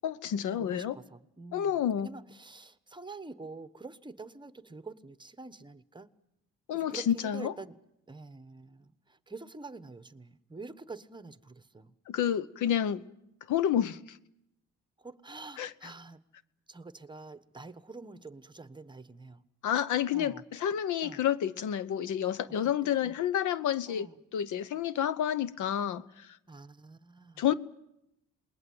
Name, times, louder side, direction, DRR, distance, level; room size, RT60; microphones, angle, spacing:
voice 1, 0.0-1.0 1.5-2.1 6.7-7.5 12.1-13.0 13.5-14.2 15.6-15.7 19.6-26.3 27.4-27.5, left 10 dB, 75° left, 1.0 m, -29 dB
voice 2, 0.6-6.1 6.7-7.8 8.1-11.9 15.0-16.2 16.7-19.4 20.1-20.4 21.0-21.2 22.6-23.1 23.9-24.2 26.5-27.4, right 3 dB, 15° right, 1.2 m, -47 dB
27.5 x 21.0 x 7.9 m
cardioid pair, 90°, 30 cm